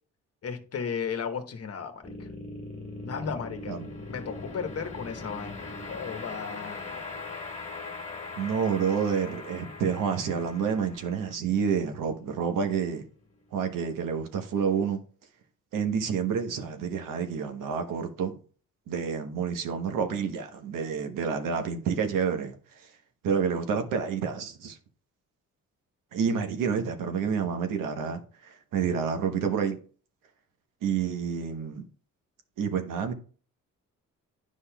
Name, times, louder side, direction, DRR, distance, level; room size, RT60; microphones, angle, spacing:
voice 1, 0.4-2.3 3.0-3.8 4.1-7.0, left 6 dB, 50° left, 1.2 m, -35 dB
sound 1, 2.0-13.2, left 3 dB, 25° left, 1.8 m, -41 dB
voice 2, 8.3-13.0 13.5-15.0 15.7-18.4 18.9-22.9 23.2-24.8 26.1-29.8 30.8-31.8 32.6-33.1, right 6 dB, 85° right, 1.1 m, -29 dB
9.9 x 5.3 x 2.3 m
cardioid pair, 80°, 32 cm